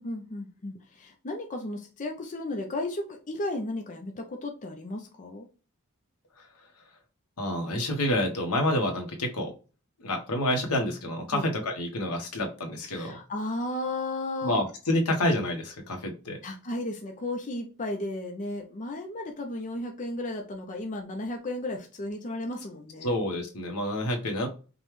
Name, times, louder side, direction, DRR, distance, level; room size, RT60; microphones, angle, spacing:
voice 1, 0.0-5.5 11.3-11.4 12.9-14.6 16.4-23.1, left 1 dB, 35° left, 3 dB, 0.6 m, -34 dB
voice 2, 7.4-9.5 10.0-13.2 14.4-16.4 23.0-24.5, left 1 dB, 80° left, 2 dB, 1.1 m, -28 dB
5.2 x 2.3 x 3.1 m, 0.34 s
head